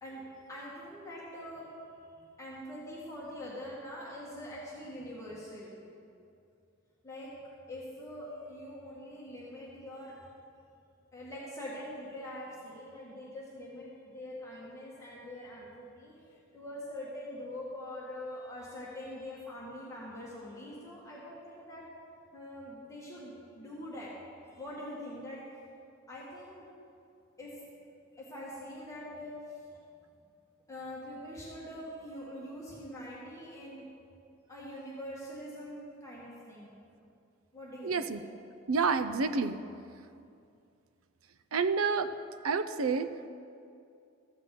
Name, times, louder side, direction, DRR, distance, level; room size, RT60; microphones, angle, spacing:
voice 1, 0.0-5.7 7.0-7.3 7.7-10.3 11.1-21.8 22.3-24.1 24.4-25.4 26.1-26.6 27.4-27.6 28.1-29.7 30.7-33.9 34.5-36.7 37.5-38.1, left 1 dB, 15° left, -7 dB, 1.9 m, -44 dB
voice 2, 37.8-38.2 38.7-39.6 41.5-42.1 42.4-43.3, right 4 dB, 85° right, 11 dB, 0.6 m, -29 dB
14.5 x 5.8 x 7.8 m, 2.5 s
head